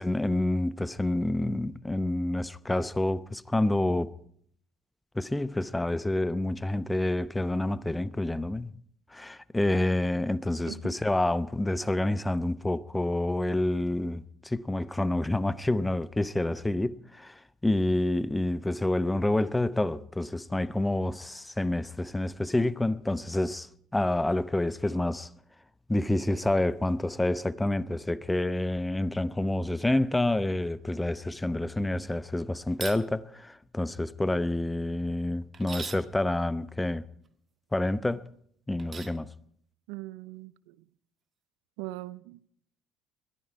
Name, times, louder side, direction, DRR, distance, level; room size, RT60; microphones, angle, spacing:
voice 1, 0.0-4.1 5.1-8.7 9.1-25.3 25.9-37.0 37.7-38.3 38.7-39.3, left 1 dB, 10° left, 0.8 m, -28 dB
sound 1, 32.7-33.0 35.5-36.0 38.8-39.2, right 5 dB, 35° right, 1.5 m, -39 dB
voice 2, 39.9-40.7 41.8-42.4, right 18 dB, 70° right, 0.6 m, -40 dB
21.5 x 14.5 x 4.7 m
hypercardioid pair, 60°, 0 cm